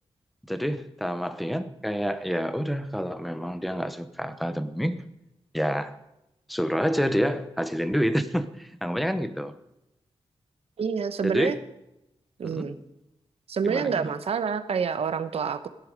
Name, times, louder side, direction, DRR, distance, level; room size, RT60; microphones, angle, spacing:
voice 1, 0.5-5.1 5.5-6.0 6.5-9.6 11.2-11.6 12.4-12.7 13.6-14.1, equal, ahead, 0.8 m, -28 dB
voice 2, 10.8-11.6 12.4-12.8 13.5-15.7, right 6 dB, 70° right, 1.0 m, -27 dB
16.5 x 11.0 x 5.2 m
wide cardioid pair, 120°, 10 cm